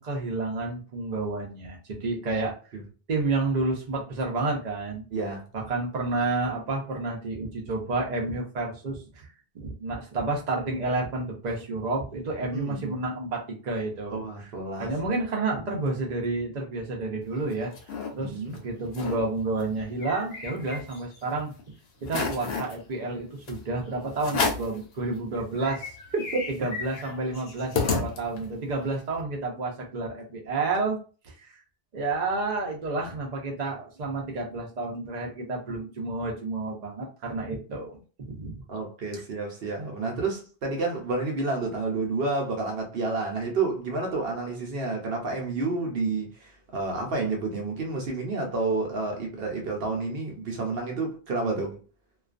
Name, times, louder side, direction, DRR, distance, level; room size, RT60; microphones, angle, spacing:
voice 1, 0.0-2.5 3.1-5.0 5.5-14.5 14.8-17.7 18.1-21.5 22.0-25.9 26.5-31.0 31.2-31.6 31.9-38.6 39.1-39.2, right 3 dB, 50° right, 0.7 m, -30 dB
voice 2, 5.1-5.5 12.4-13.0 14.1-14.9 18.2-18.5 26.1-26.4 38.7-51.8, right 3 dB, 70° right, 0.9 m, -30 dB
sound 1, 17.3-18.1 18.5-18.6 18.9-19.2 19.6-21.2 21.6-21.7 22.0-22.8 23.5-23.6 24.2-24.8 25.3-25.4 25.6-28.6, left 5 dB, 85° left, 0.9 m, -31 dB
2.3 x 2.3 x 2.4 m
omnidirectional pair, 1.0 m